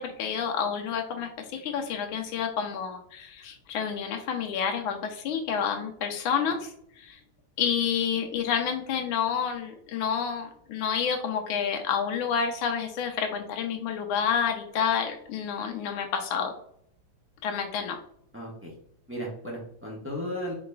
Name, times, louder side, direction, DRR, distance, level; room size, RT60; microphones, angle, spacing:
voice 1, 0.0-6.7 7.0-7.2 7.6-16.5 17.4-18.0, left 7 dB, 85° left, 3 dB, 1.4 m, -29 dB
voice 2, 18.3-18.7 19.1-20.5, equal, 10° right, -3 dB, 0.6 m, -35 dB
4.8 x 3.9 x 2.2 m, 0.66 s
omnidirectional pair, 2.2 m